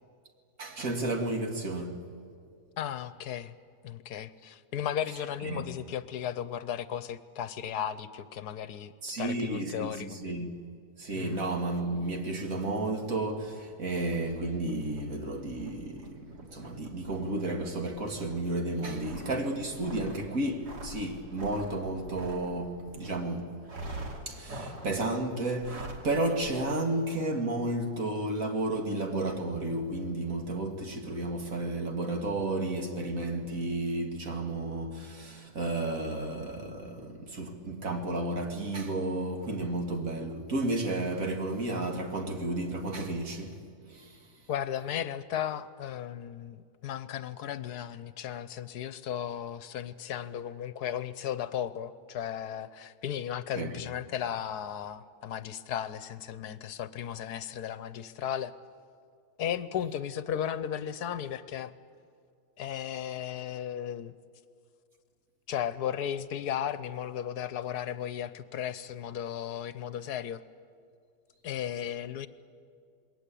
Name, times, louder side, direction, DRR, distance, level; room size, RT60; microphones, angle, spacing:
voice 1, 0.6-2.0 5.4-5.6 9.0-10.5 11.0-23.6 24.3-43.6 43.9-44.2 53.6-53.8, right 2 dB, 55° right, 2.5 m, -32 dB
voice 2, 2.8-3.5 3.8-10.2 11.2-11.4 44.5-58.5 59.4-61.7 62.6-64.1 65.5-70.4 71.4-72.3, left 9 dB, 75° left, 1.3 m, -35 dB
sound 1, 14.0-23.2 23.6-25.1 25.5-26.1 26.4-26.5, right 1 dB, 85° right, 3.2 m, -45 dB
27.5 x 20.5 x 8.5 m
omnidirectional pair, 1.7 m